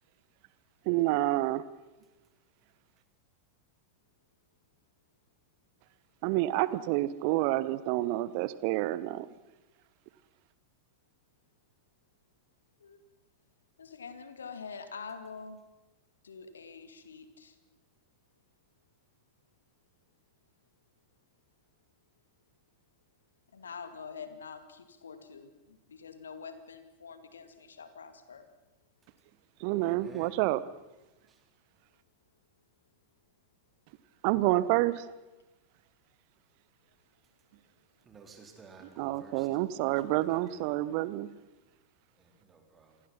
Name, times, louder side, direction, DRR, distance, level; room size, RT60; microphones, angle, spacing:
voice 1, 0.9-1.6 6.2-9.3 29.6-30.6 34.2-35.0 39.0-41.3, right 16 dB, 45° right, 1.1 m, -28 dB
voice 2, 13.8-15.6 16.2-17.6 23.5-28.5, left 5 dB, 70° left, 2.2 m, -46 dB
voice 3, 29.8-30.3 31.3-31.4 38.1-39.5 40.0-40.6 42.2-42.9, right 5 dB, 20° right, 4.0 m, -54 dB
27.5 x 20.0 x 5.8 m
figure-of-eight pair, 90°, 0 cm